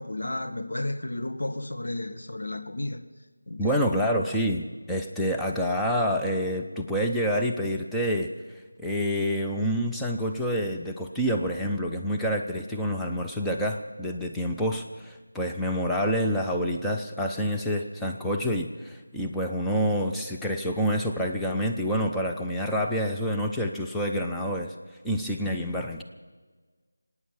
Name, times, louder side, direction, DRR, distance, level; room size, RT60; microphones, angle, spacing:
voice 1, 0.0-3.1 3.5-4.1, left 1 dB, 70° left, 1.4 m, -33 dB
voice 2, 3.6-8.3 8.8-24.7 25.0-26.0, equal, ahead, 0.7 m, -27 dB
26.0 x 9.5 x 5.6 m
figure-of-eight pair, 165°, 0 cm